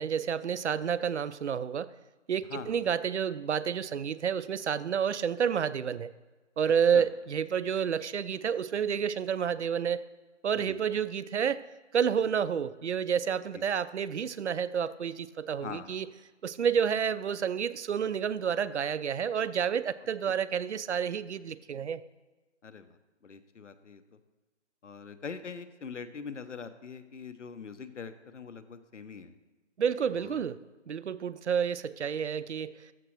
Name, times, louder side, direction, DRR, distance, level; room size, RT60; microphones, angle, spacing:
voice 1, 0.0-1.9 2.3-6.1 6.6-10.0 10.4-11.6 11.9-16.1 16.4-22.0 29.8-30.6 30.9-32.9, right 7 dB, 70° right, 17 dB, 0.5 m, -29 dB
voice 2, 2.5-2.9 6.9-7.1 10.6-10.8 13.5-13.6 15.6-16.0 20.3-20.4 22.6-24.2 24.8-29.3 30.1-30.5, left 5 dB, 75° left, 11 dB, 0.8 m, -43 dB
13.5 x 6.1 x 3.1 m, 1.2 s
figure-of-eight pair, 170°, 36 cm